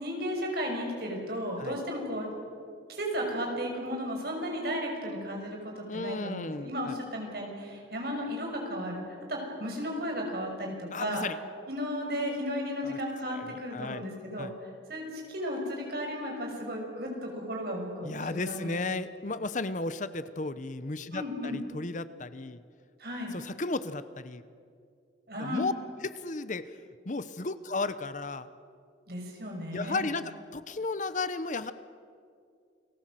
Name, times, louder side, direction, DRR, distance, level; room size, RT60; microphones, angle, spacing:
voice 1, 0.0-2.3 2.9-9.0 9.3-11.2 11.7-19.0 21.1-21.6 23.0-23.3 25.3-25.6 29.1-30.1, equal, 55° right, 1 dB, 5.9 m, -34 dB
voice 2, 5.9-7.0 10.9-11.4 12.8-13.0 13.3-14.0 14.4-14.5 18.0-22.6 23.3-24.4 25.4-25.7 26.0-26.8 27.0-28.5 29.7-31.7, left 3 dB, 40° left, 13 dB, 0.8 m, -34 dB
29.5 x 19.5 x 7.7 m, 2.3 s
head